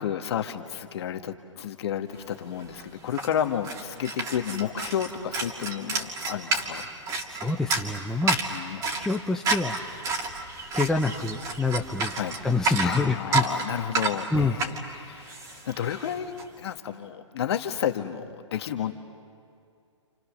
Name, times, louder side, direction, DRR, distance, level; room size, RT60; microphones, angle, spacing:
voice 1, 0.0-6.9 8.5-8.8 12.1-12.4 12.8-18.9, left 9 dB, 55° left, 6 dB, 1.7 m, -31 dB
sound 1, 2.3-2.4 2.6-16.4, right 3 dB, 20° right, 2.8 m, -30 dB
voice 2, 7.1-8.5 8.9-9.9 10.7-12.1 12.4-13.4 14.3-14.6, left 3 dB, 5° left, 2 dB, 0.9 m, -27 dB
29.0 x 29.0 x 6.6 m, 2.4 s
hypercardioid pair, 135°, 16 cm